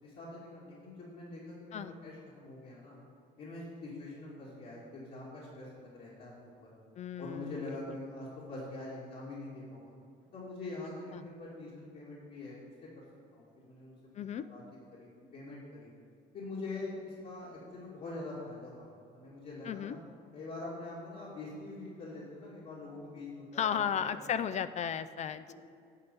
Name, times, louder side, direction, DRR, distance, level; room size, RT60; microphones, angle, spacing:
voice 1, 0.0-3.0 3.4-6.3 6.6-6.7 7.2-9.9 10.3-12.9 13.3-13.9 14.5-14.6 14.9-15.9 16.3-20.0 20.3-24.4 25.5-25.6, left 2 dB, 60° left, -8 dB, 2.4 m, -44 dB
voice 2, 7.0-7.6 11.1-11.2 14.2-14.4 19.6-20.0 23.6-25.5, left 8 dB, 45° left, 13 dB, 0.4 m, -34 dB
11.0 x 4.4 x 7.0 m, 2.5 s
cardioid pair, 110°, 17 cm